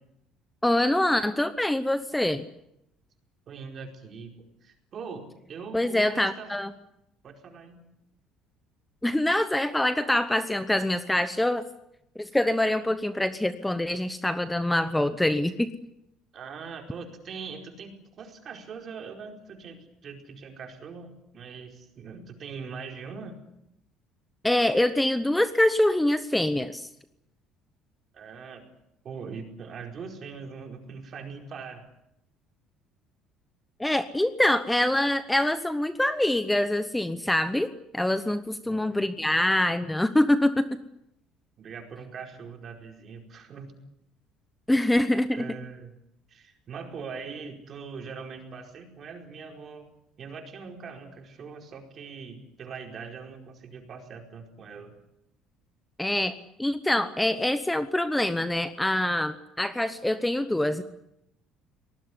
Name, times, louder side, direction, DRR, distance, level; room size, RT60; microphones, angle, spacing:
voice 1, 0.6-2.5 5.7-6.7 9.0-11.6 12.2-15.7 24.4-26.9 33.8-37.7 37.9-40.8 44.7-45.4 56.0-56.3 56.6-60.8, left 1 dB, 5° left, 11 dB, 0.9 m, -25 dB
voice 2, 3.5-6.6 7.2-7.9 16.3-23.4 28.1-28.6 29.0-31.9 38.6-39.0 41.6-43.7 44.7-44.9 45.3-46.0 46.3-49.9 50.2-54.9, right 5 dB, 40° right, 3 dB, 4.8 m, -42 dB
24.0 x 19.5 x 9.8 m, 0.82 s
cardioid pair, 145°, 0 cm